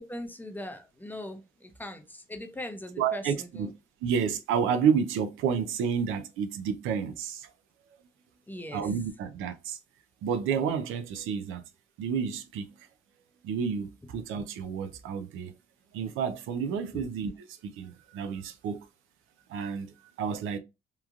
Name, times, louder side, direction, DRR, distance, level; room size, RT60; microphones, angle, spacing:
voice 1, 0.0-3.7 8.5-8.9 16.9-17.1, left 1 dB, 10° left, 0.6 m, -40 dB
voice 2, 3.0-3.7 4.0-7.5 8.7-9.8 10.2-11.6 12.0-12.7 13.4-15.5 15.9-18.8 19.5-20.6, right 7 dB, 90° right, 0.5 m, -30 dB
3.0 x 2.4 x 2.3 m
cardioid pair, 90°, 20 cm